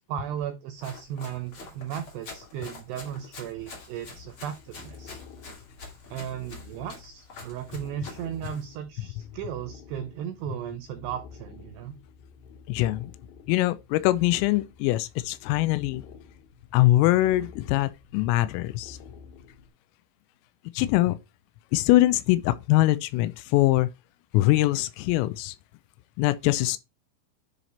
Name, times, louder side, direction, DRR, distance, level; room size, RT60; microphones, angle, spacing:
voice 1, 0.0-5.2 6.1-12.0, right 9 dB, 80° right, 2.4 m, -36 dB
Run, 0.8-8.7, left 3 dB, 35° left, 2.2 m, -46 dB
sound 1, 3.4-19.7, left 6 dB, 65° left, 3.0 m, -50 dB
voice 2, 12.7-13.1 13.5-16.0 16.7-19.0 20.7-21.2 21.7-23.9 24.3-25.6 26.2-26.8, left 17 dB, 85° left, 3.3 m, -23 dB
10.0 x 4.3 x 4.2 m
omnidirectional pair, 5.8 m